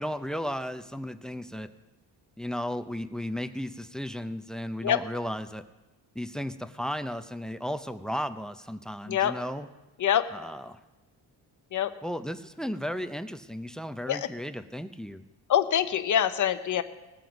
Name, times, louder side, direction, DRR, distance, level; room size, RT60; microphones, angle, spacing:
voice 1, 0.0-1.7 2.4-5.6 6.1-9.7 10.3-10.8 12.0-15.2, equal, ahead, 12 dB, 0.5 m, -34 dB
voice 2, 15.5-16.8, left 10 dB, 45° left, 9 dB, 0.8 m, -25 dB
19.5 x 7.7 x 5.2 m, 1.1 s
cardioid pair, 100°, 44 cm